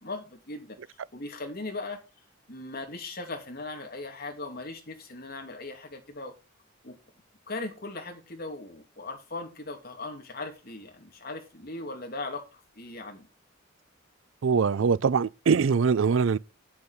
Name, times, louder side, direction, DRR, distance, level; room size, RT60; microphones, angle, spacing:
voice 1, 0.0-2.0 2.5-6.3 6.8-7.0 7.5-13.3, left 2 dB, 50° left, 2.6 m, -39 dB
voice 2, 14.4-16.4, right 5 dB, 70° right, 0.4 m, -23 dB
8.7 x 8.3 x 4.2 m
head